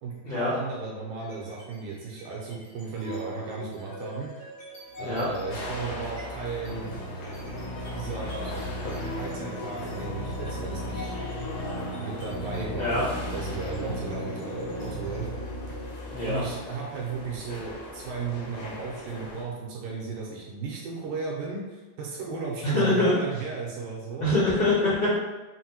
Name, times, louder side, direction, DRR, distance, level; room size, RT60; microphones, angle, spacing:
voice 1, 0.0-4.3 5.0-6.9 7.9-8.7 9.2-11.2 12.0-15.3 16.2-24.3, right 4 dB, 80° right, -3 dB, 2.0 m, -35 dB
sound 1, 1.2-1.7 2.1-18.7, equal, 55° left, 1.5 m, -37 dB
sound 2, 5.5-19.4, left 2 dB, 90° left, 1.4 m, -41 dB
voice 2, 22.7-23.1 24.2-25.1, left 2 dB, 75° left, -12 dB, 1.0 m, -24 dB
5.8 x 2.1 x 2.9 m, 1.2 s
omnidirectional pair, 4.0 m